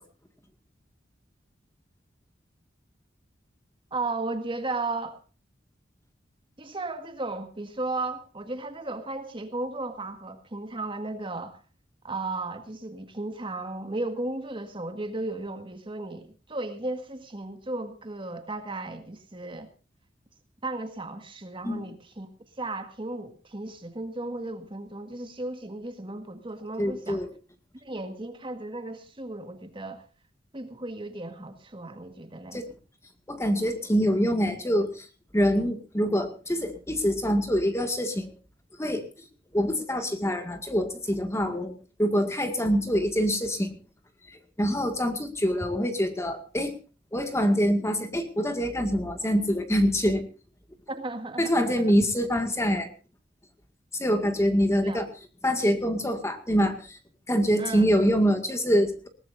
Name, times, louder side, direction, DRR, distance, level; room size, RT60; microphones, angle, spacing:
voice 1, 3.9-5.2 6.6-11.6 12.0-19.7 20.6-22.3 22.6-27.2 27.8-30.0 30.5-32.6 50.9-51.9 54.8-55.1 57.6-57.9, right 2 dB, 30° right, 7 dB, 1.8 m, -35 dB
voice 2, 26.8-27.3 32.5-32.6 33.3-35.1 35.3-38.3 38.8-39.0 39.5-43.7 44.3-46.8 47.1-50.2 51.4-52.9 53.9-55.1 55.4-57.0 57.3-59.1, equal, 15° left, 7 dB, 2.0 m, -25 dB
20.5 x 18.5 x 2.6 m, 0.34 s
head